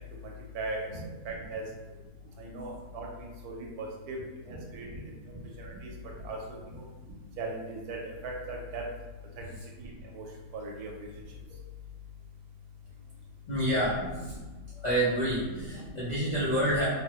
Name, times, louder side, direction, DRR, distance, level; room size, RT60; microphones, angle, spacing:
voice 1, 0.2-0.9 1.2-1.6 2.4-4.2 4.5-4.9 5.2-5.9 6.2-6.4 6.7-6.8 7.4-8.9 9.4-9.5 9.8-10.2 10.5-10.9 13.8-14.4 15.3-15.8 16.3-16.9, right 2 dB, 80° right, 0 dB, 1.1 m, -39 dB
voice 2, 13.5-14.3 14.7-16.9, equal, 55° left, -10 dB, 0.5 m, -29 dB
3.5 x 2.0 x 2.8 m, 1.2 s
omnidirectional pair, 1.6 m